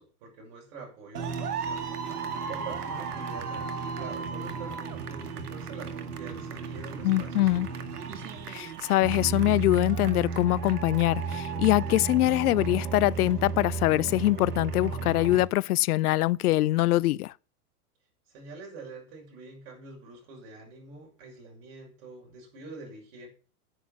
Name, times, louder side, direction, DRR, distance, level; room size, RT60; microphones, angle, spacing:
voice 1, 0.0-1.9 2.5-7.8 18.3-23.3, right 3 dB, 50° right, 6.5 m, -46 dB
sound 1, 1.1-15.4, right 5 dB, 80° right, 2.1 m, -34 dB
voice 2, 7.0-7.7 8.5-17.3, left 17 dB, 75° left, 0.5 m, -24 dB
10.0 x 9.1 x 5.9 m
hypercardioid pair, 115°, 46 cm